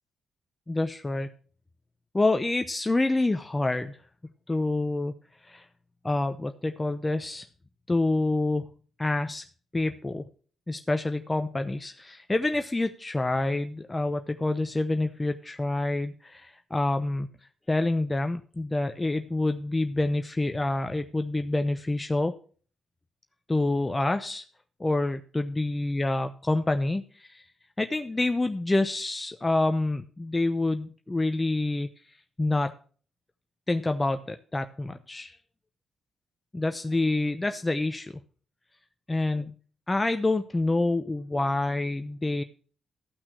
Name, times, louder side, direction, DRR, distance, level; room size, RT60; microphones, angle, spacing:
voice 1, 0.7-1.3 2.1-4.0 4.5-5.1 5.4-5.6 6.0-7.5 7.9-8.7 9.0-9.4 9.7-10.2 10.7-17.3 17.7-22.3 23.5-24.4 24.8-27.4 27.8-31.9 32.4-32.7 33.7-35.4 36.5-38.2 39.1-39.5 39.9-42.4, left 2 dB, 20° left, 7 dB, 0.8 m, -27 dB
13.0 x 6.0 x 6.1 m, 0.42 s
hypercardioid pair, 40°, 0 cm